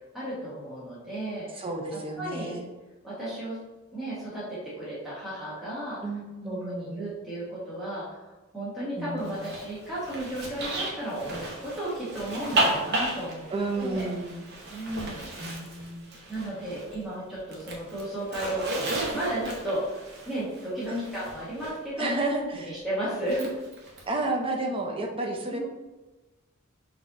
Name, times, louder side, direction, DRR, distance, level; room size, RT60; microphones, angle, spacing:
voice 1, 0.1-1.6 2.2-2.6 3.0-3.6 3.9-6.0 6.4-8.2 8.5-13.4 13.7-14.1 14.7-15.2 16.3-23.5 25.5-25.6, right 1 dB, ahead, -11 dB, 1.2 m, -34 dB
voice 2, 1.5-2.6 6.0-7.1 9.0-9.5 13.5-14.4 15.4-16.1 20.9-21.2 22.0-22.7 24.1-25.6, right 2 dB, 25° right, 1 dB, 0.6 m, -31 dB
Zipper (clothing), 9.2-17.0 17.3-21.8 23.2-24.0, right 2 dB, 55° right, 0.8 m, -34 dB
6.0 x 2.8 x 2.5 m, 1.1 s
head